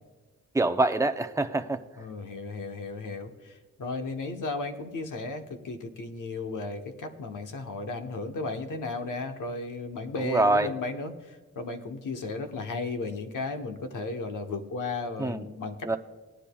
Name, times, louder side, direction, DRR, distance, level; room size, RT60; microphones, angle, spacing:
voice 1, 0.5-1.8 10.2-10.7 15.2-15.5 15.8-16.0, right 2 dB, 10° right, 7 dB, 0.5 m, -25 dB
voice 2, 2.0-11.1 11.5-16.0, left 3 dB, 85° left, 5 dB, 1.1 m, -35 dB
19.0 x 10.0 x 2.3 m, 1.2 s
wide cardioid pair, 105°, 30 cm